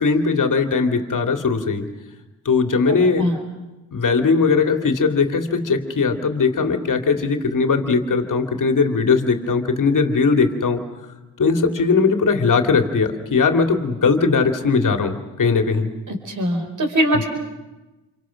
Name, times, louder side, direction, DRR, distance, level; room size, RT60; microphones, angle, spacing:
voice 1, 0.0-1.9 2.4-3.3 3.9-10.8 11.4-15.9, left 4 dB, 45° left, 5 dB, 2.7 m, -19 dB
voice 2, 2.9-3.4 16.1-17.3, equal, 45° right, 5 dB, 5.0 m, -22 dB
28.5 x 24.5 x 6.3 m, 1.1 s
supercardioid pair, 60°, 42 cm